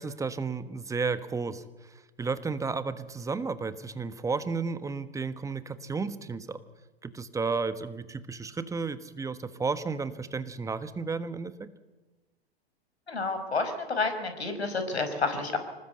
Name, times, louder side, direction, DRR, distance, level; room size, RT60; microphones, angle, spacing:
voice 1, 0.0-6.6 7.0-11.7, right 4 dB, 10° right, 12 dB, 1.4 m, -33 dB
voice 2, 13.1-15.6, left 3 dB, 85° left, 8 dB, 5.2 m, -30 dB
26.0 x 19.5 x 8.0 m, 1.1 s
hypercardioid pair, 115°, 31 cm